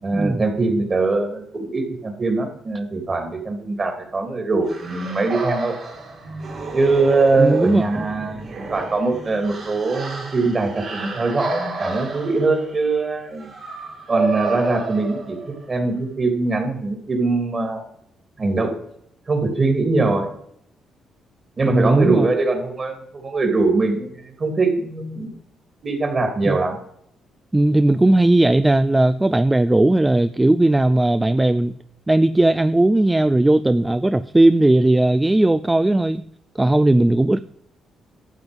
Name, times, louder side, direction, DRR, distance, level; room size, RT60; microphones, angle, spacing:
voice 1, 0.0-5.7 6.7-13.5 14.1-15.4 15.7-17.8 18.4-18.8 19.3-20.3 21.6-25.3 25.8-26.8, right 3 dB, 35° right, 5 dB, 3.1 m, -22 dB
sound 1, 4.7-15.7, right 3 dB, 55° right, 4.7 m, -30 dB
voice 2, 7.4-8.0 21.7-22.3 26.4-26.6 27.5-31.7 32.1-36.2 36.6-37.4, right 1 dB, 15° right, 13 dB, 0.4 m, -17 dB
12.0 x 7.8 x 5.4 m, 0.73 s
cardioid pair, 90°, 0 cm